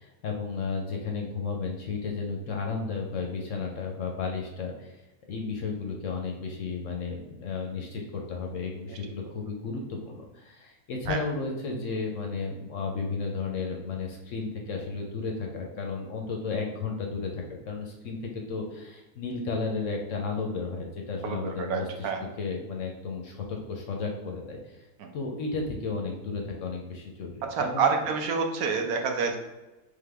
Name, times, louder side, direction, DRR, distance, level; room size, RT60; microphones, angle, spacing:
voice 1, 0.0-5.0 5.3-22.1 22.4-24.9 25.1-28.1, left 4 dB, 65° left, 1 dB, 0.8 m, -33 dB
voice 2, 21.2-22.2 25.0-25.1 27.5-29.4, right 5 dB, 75° right, 4 dB, 1.1 m, -28 dB
3.7 x 3.5 x 3.4 m, 1.1 s
omnidirectional pair, 1.7 m